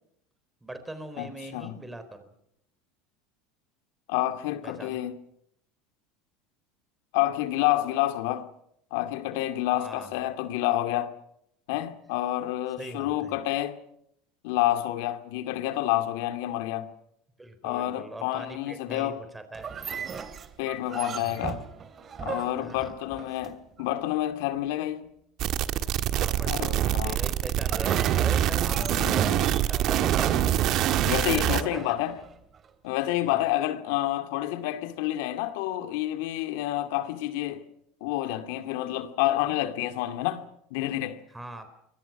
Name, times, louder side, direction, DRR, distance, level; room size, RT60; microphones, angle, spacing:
voice 1, 0.6-2.3 4.6-5.0 9.7-10.2 12.8-13.3 17.4-19.7 22.6-23.0 26.1-30.8 31.3-31.9 33.2-33.4 41.3-41.7, right 1 dB, 10° right, 4.2 m, -41 dB
voice 2, 1.2-1.8 4.1-5.2 7.1-8.5 8.9-11.1 11.7-13.8 14.4-16.9 17.6-19.2 20.6-21.6 22.2-25.1 26.5-27.2 28.7-29.5 31.0-32.2 32.8-37.6 38.0-40.4 40.7-41.2, left 14 dB, 75° left, 2.2 m, -29 dB
sound 1, 19.5-23.8 27.6-32.7, right 6 dB, 35° right, 2.5 m, -38 dB
sound 2, 25.4-31.6, right 11 dB, 55° right, 1.5 m, -25 dB
29.5 x 23.0 x 6.0 m
hypercardioid pair, 90°, 0 cm